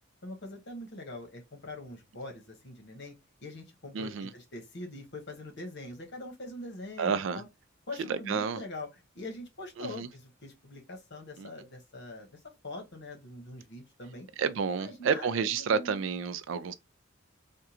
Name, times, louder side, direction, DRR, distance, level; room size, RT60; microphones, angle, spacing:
voice 1, 0.2-3.1 3.4-7.5 7.9-14.3 14.8-16.0, left 2 dB, 60° left, 1.1 m, -43 dB
voice 2, 3.9-4.3 7.0-7.4 8.1-8.6 9.8-10.1 11.4-11.5 14.4-16.7, right 6 dB, 65° right, 0.4 m, -30 dB
3.6 x 2.2 x 2.9 m
head